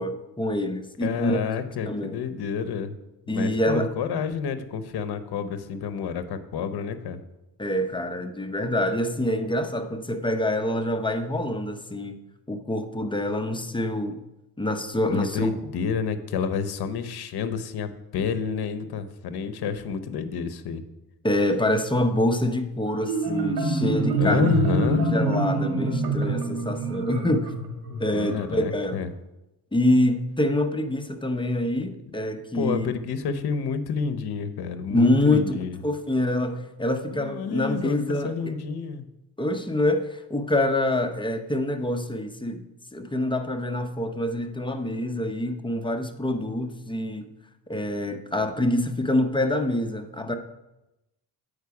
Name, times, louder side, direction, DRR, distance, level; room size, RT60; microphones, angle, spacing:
voice 1, 0.0-1.4 1.9-2.2 3.3-3.9 7.6-12.2 12.5-14.2 14.6-15.5 21.2-24.5 24.9-27.5 28.0-29.0 29.7-32.9 34.9-38.5 39.4-42.6 42.9-47.3 47.7-50.3, left 1 dB, 10° left, 6 dB, 0.6 m, -26 dB
voice 2, 1.0-2.9 3.3-7.2 15.1-20.8 24.2-25.1 27.9-29.1 32.5-35.8 37.1-39.1, left 6 dB, 65° left, 11 dB, 0.8 m, -29 dB
Marimba xylophone, 22.9-28.4, right 2 dB, 65° right, 1.8 m, -26 dB
8.0 x 5.1 x 4.8 m, 0.96 s
cardioid pair, 100°, 41 cm